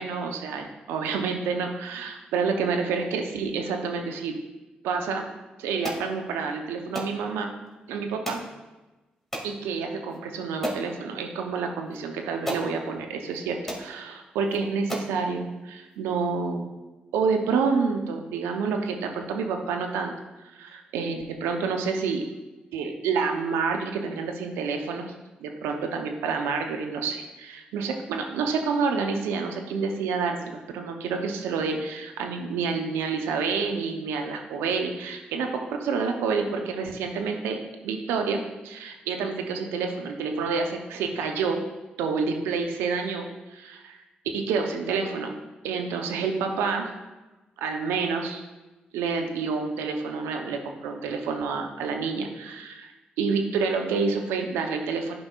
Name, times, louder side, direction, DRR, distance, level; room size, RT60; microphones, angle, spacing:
voice 1, 0.0-4.3 4.8-5.2 5.6-7.5 7.9-8.4 9.4-16.7 17.1-20.1 20.4-22.2 22.7-25.1 25.4-41.6 42.0-44.0 44.3-45.3 45.6-46.9 47.6-48.4 48.9-52.9 53.2-55.2, right 5 dB, 80° right, 4 dB, 0.7 m, -28 dB
sound 1, 5.8-6.1 6.9-7.1 8.2-8.5 9.3-9.5 10.1-10.2 10.6-10.9 11.9-12.0 12.4-12.7 13.3-13.4 13.7-13.9 14.5-14.6 14.9-15.2, equal, 5° left, 2.3 m, -32 dB
11.5 x 5.2 x 2.4 m, 1.1 s
hypercardioid pair, 40°, 4 cm